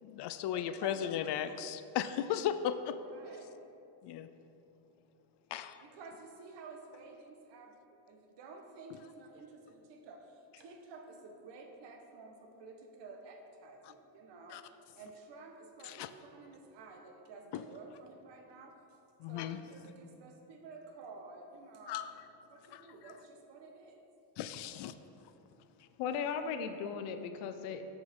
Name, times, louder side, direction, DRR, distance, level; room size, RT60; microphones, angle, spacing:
voice 1, 0.0-3.0 4.0-4.3 5.5-5.8 13.8-13.9 14.5-14.6 15.8-16.1 17.5-17.6 19.2-19.6 21.9-22.1 22.7-22.9 24.4-24.9, left 10 dB, 60° left, 12 dB, 0.5 m, -36 dB
voice 2, 0.5-1.4 3.0-3.5 5.8-18.8 19.3-22.1 22.5-24.0, right 3 dB, 60° right, 3 dB, 1.3 m, -52 dB
voice 3, 26.0-27.8, left 6 dB, 85° left, 8 dB, 0.8 m, -37 dB
13.5 x 5.4 x 3.7 m, 2.8 s
cardioid pair, 120°, 49 cm